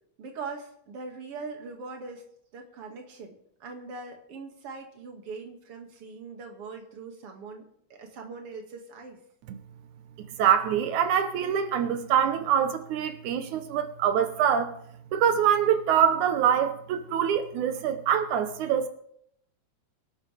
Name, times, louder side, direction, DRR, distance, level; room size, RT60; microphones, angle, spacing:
voice 1, 0.2-2.2 2.5-3.3 3.6-7.6 7.9-9.2, right 4 dB, 50° right, 2.8 m, -41 dB
voice 2, 10.2-14.8 15.1-18.9, right 8 dB, 85° right, 2.4 m, -24 dB
24.0 x 12.0 x 3.4 m
omnidirectional pair, 3.4 m